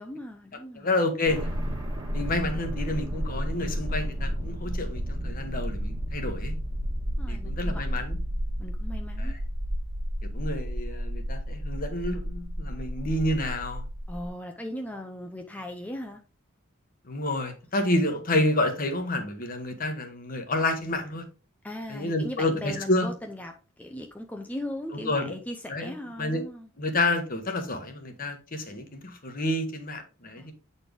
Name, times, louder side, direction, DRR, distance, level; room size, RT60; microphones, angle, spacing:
voice 1, 0.0-0.9 7.2-8.0 8.6-9.3 14.1-16.2 21.6-26.7 30.4-30.5, left 1 dB, 10° left, 0.6 m, -38 dB
voice 2, 0.7-1.5 2.1-6.5 7.3-8.2 9.2-9.4 10.3-13.8 17.1-21.2 21.9-23.1 24.9-25.3 25.7-25.9 26.2-26.4 26.8-30.5, left 1 dB, 45° left, 1.2 m, -29 dB
sound 1, 1.2-14.3, equal, 25° right, 1.5 m, -32 dB
8.5 x 4.2 x 3.4 m
head